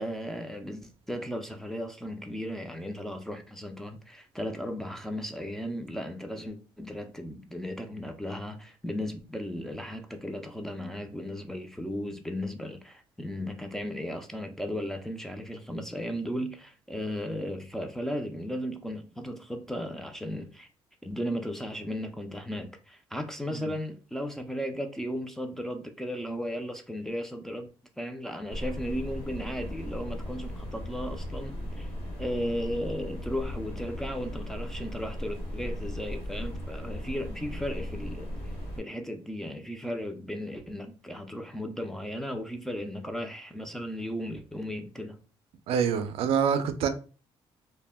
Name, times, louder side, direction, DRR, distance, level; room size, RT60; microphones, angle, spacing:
voice 1, 0.0-20.7 21.0-27.7 28.0-31.9 32.2-38.3 38.8-45.2, equal, 5° left, 0.3 m, -35 dB
sound 1, 28.5-38.8, equal, 75° left, 1.1 m, -37 dB
voice 2, 45.7-46.9, right 7 dB, 75° right, 0.4 m, -26 dB
2.1 x 2.0 x 3.3 m
cardioid pair, 125°, 10 cm